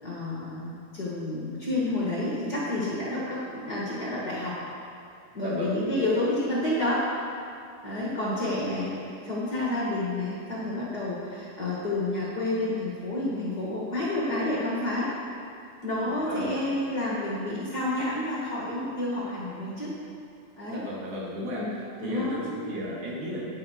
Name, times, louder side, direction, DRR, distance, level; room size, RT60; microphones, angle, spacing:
voice 1, 0.0-4.6 5.3-7.0 7.8-15.1 15.8-19.9 20.6-20.8 21.6-21.7 22.0-22.3, left 1 dB, 40° left, -6 dB, 1.8 m, -29 dB
voice 2, 5.4-5.8 16.0-16.6 20.7-21.6 22.0-23.5, equal, 65° right, -5 dB, 3.5 m, -34 dB
17.5 x 6.5 x 4.6 m, 2.5 s
omnidirectional pair, 3.7 m